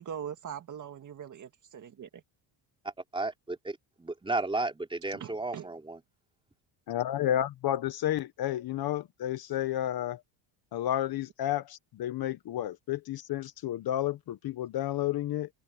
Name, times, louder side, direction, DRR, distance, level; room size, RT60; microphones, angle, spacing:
voice 1, 0.0-2.2 5.1-5.7, right 8 dB, 40° right, 1.9 m, -41 dB
voice 2, 3.1-6.0, right 2 dB, 10° right, 3.8 m, -33 dB
voice 3, 6.9-10.2 10.7-15.5, left 12 dB, 50° left, 1.1 m, -31 dB
open air
cardioid pair, 135°, 49 cm